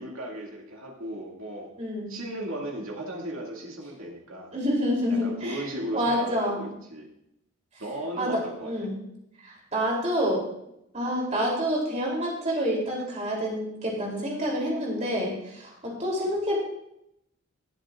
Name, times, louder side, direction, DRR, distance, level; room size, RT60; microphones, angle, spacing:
voice 1, 0.0-1.7 2.1-4.5 5.1-7.1 7.8-8.9, right 1 dB, 80° right, -1 dB, 2.3 m, -36 dB
voice 2, 1.8-2.1 4.5-5.6 5.9-6.6 8.2-8.9 9.4-10.4 10.9-16.6, equal, 35° right, -2 dB, 3.3 m, -28 dB
19.5 x 8.0 x 2.5 m, 0.80 s
head